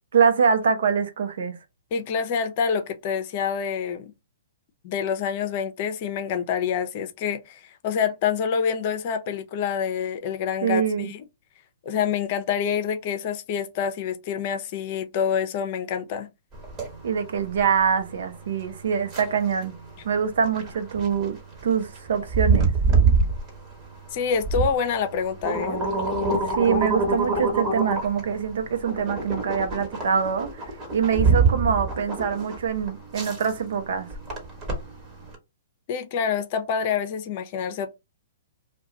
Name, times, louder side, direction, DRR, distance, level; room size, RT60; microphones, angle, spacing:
voice 1, 0.1-1.6 10.6-11.1 17.0-19.8 20.0-21.4 21.6-22.7 26.4-30.6 30.9-34.1, right 6 dB, 70° right, 0.7 m, -24 dB
voice 2, 1.9-4.1 4.8-11.2 11.8-16.3 24.1-25.8 35.9-37.9, left 7 dB, 45° left, 0.6 m, -27 dB
sound 1, 16.5-35.3, right 4 dB, 25° right, 1.3 m, -26 dB
2.4 x 2.3 x 3.9 m
hypercardioid pair, 135°, 0 cm